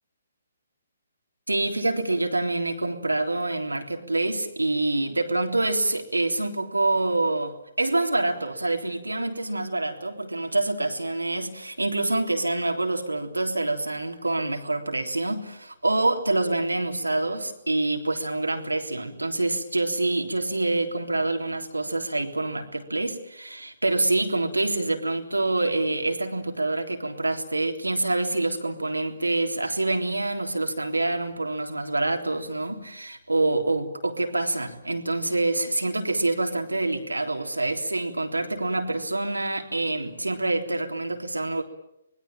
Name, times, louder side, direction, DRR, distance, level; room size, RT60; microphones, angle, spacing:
voice 1, 1.5-41.6, right 2 dB, 90° right, 4 dB, 3.6 m, -26 dB
25.0 x 21.0 x 8.9 m, 0.84 s
figure-of-eight pair, 135°, 0 cm